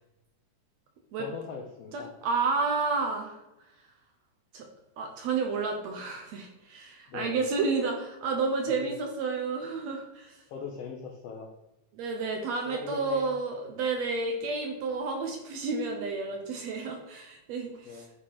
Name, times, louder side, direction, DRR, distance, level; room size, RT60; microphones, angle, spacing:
voice 1, 1.2-2.1 7.1-7.5 8.7-8.9 10.5-11.5 12.6-13.4 17.8-18.1, left 5 dB, 75° left, 0 dB, 1.4 m, -40 dB
voice 2, 1.9-3.4 4.5-4.7 5.0-10.4 11.9-18.0, right 4 dB, 70° right, 3 dB, 1.8 m, -31 dB
8.4 x 3.7 x 4.7 m, 0.95 s
omnidirectional pair, 3.7 m